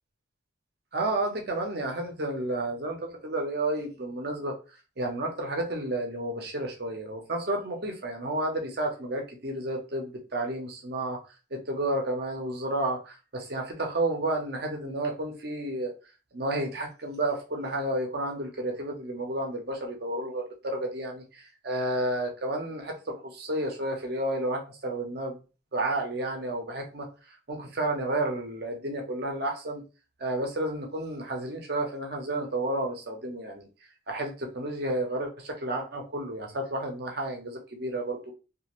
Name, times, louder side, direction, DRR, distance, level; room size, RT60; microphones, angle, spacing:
voice 1, 0.9-11.2 11.5-15.9 16.3-25.4 25.7-29.8 30.2-33.7 34.1-38.3, right 1 dB, 50° right, 2 dB, 0.7 m, -31 dB
2.5 x 2.5 x 3.0 m, 0.33 s
head